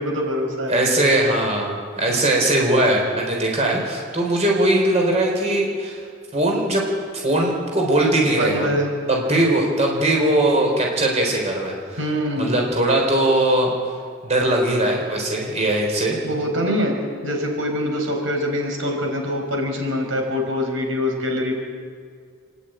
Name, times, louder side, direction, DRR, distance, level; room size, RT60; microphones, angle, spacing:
voice 1, 0.0-1.0 2.1-2.4 8.4-8.9 9.3-9.5 12.0-12.6 16.2-21.5, equal, 80° right, 2 dB, 4.8 m, -24 dB
voice 2, 0.7-6.0 6.3-6.9 7.2-8.7 9.1-12.0 12.4-13.7 14.2-16.2, right 1 dB, 35° right, 0 dB, 4.2 m, -20 dB
28.0 x 11.0 x 9.2 m, 2.1 s
head